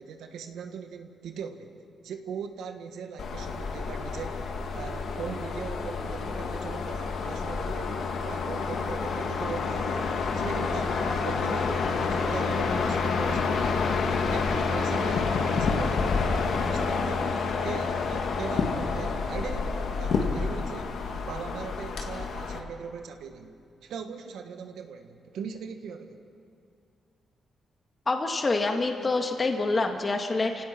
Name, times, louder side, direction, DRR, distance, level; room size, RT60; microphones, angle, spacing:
voice 1, 0.0-1.7 2.0-7.9 8.2-13.9 14.3-23.6 23.8-26.2, right 6 dB, 90° right, 6 dB, 1.6 m, -40 dB
sound 1, 3.2-22.6, left 4 dB, 75° left, 2.1 m, -28 dB
voice 2, 28.1-30.6, left 3 dB, 35° left, 4 dB, 1.8 m, -26 dB
29.5 x 17.0 x 6.0 m, 2.4 s
cardioid pair, 90°, 0 cm